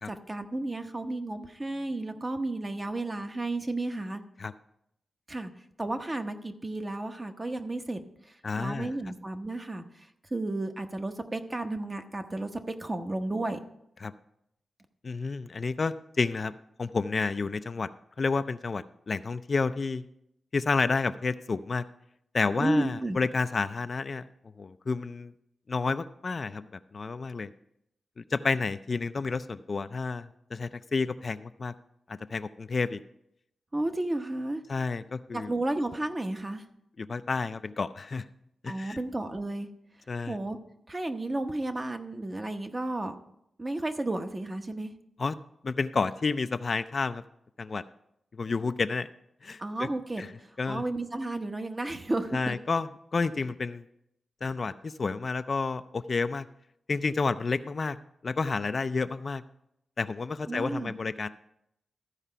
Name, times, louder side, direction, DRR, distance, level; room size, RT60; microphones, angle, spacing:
voice 1, 0.1-4.2 5.3-5.5 5.8-13.6 22.6-23.2 33.7-34.6 35.3-36.7 38.7-39.7 40.3-40.6 40.9-43.1 43.6-44.9 49.6-52.6 60.5-60.9, right 2 dB, 25° right, 7 dB, 0.9 m, -33 dB
voice 2, 8.4-8.9 14.0-14.1 15.0-16.5 16.8-17.9 18.2-20.0 20.5-21.8 22.3-24.2 24.6-25.3 25.7-26.7 26.9-27.5 28.2-31.7 32.1-33.0 34.7-35.5 37.0-38.2 38.6-39.0 40.1-40.4 45.2-45.3 45.6-47.2 47.6-47.8 48.3-49.1 49.4-49.9 50.2-50.3 50.6-50.8 52.3-53.8 54.4-56.5 56.9-58.0 58.2-59.4 60.0-61.3, left 4 dB, 45° left, 11 dB, 0.4 m, -30 dB
14.0 x 4.9 x 5.6 m, 0.78 s
wide cardioid pair, 90°, 0 cm